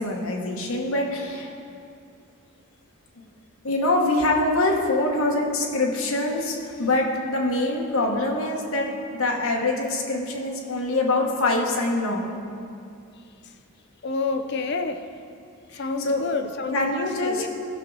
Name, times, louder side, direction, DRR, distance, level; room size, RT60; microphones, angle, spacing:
voice 1, 0.0-1.5 3.6-8.9 9.2-12.3 15.7-16.2 16.7-17.4, left 2 dB, 70° left, -1 dB, 1.3 m, -24 dB
voice 2, 14.0-15.1 15.7-17.5, left 3 dB, 50° left, 8 dB, 0.5 m, -29 dB
14.5 x 6.1 x 4.0 m, 2.4 s
head